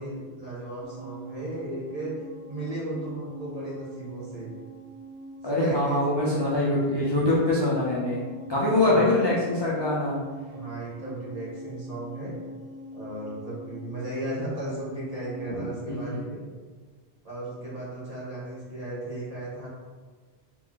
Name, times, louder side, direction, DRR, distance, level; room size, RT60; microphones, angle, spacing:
voice 1, 0.0-2.1 2.5-4.5 5.4-6.3 8.6-9.0 10.5-12.3 12.9-16.4 17.2-19.7, right 1 dB, 35° right, -8 dB, 1.3 m, -35 dB
sound 1, 0.8-16.2, right 2 dB, 90° right, 0.9 m, -43 dB
voice 2, 5.4-10.2 15.5-15.6 15.9-16.2, left 2 dB, 35° left, -6 dB, 0.5 m, -24 dB
3.2 x 2.9 x 3.8 m, 1.4 s
omnidirectional pair, 1.1 m